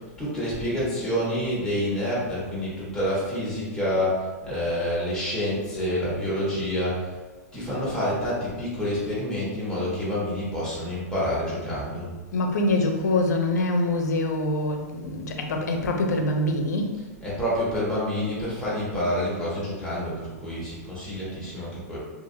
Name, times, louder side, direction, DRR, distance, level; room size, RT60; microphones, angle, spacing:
voice 1, 0.0-7.2 7.5-12.1 17.2-22.0, equal, 5° left, -9 dB, 1.4 m, -28 dB
voice 2, 12.3-17.0, left 2 dB, 85° left, 3 dB, 0.5 m, -24 dB
2.8 x 2.4 x 2.7 m, 1.3 s
hypercardioid pair, 125°, 9 cm